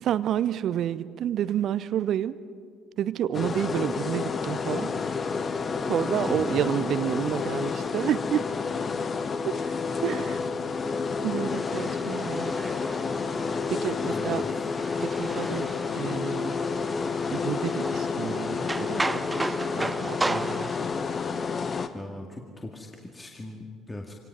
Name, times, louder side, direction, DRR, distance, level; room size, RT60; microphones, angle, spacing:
voice 1, 0.0-2.4 3.0-5.0 5.9-8.5 9.6-10.4 11.2-12.5 13.7-14.4 15.0-16.6 17.3-19.2 19.5-20.9, right 10 dB, 55° right, 17 dB, 0.6 m, -30 dB
sound 1, 3.3-21.9, left 5 dB, 35° left, 1.1 m, -30 dB
voice 2, 6.3-6.6 14.1-14.7 21.9-24.1, left 2 dB, 20° left, 1 dB, 2.0 m, -39 dB
sound 2, 11.5-20.9, right 2 dB, 15° right, 0.5 m, -36 dB
25.0 x 18.5 x 6.0 m, 2.3 s
figure-of-eight pair, 50°, 0 cm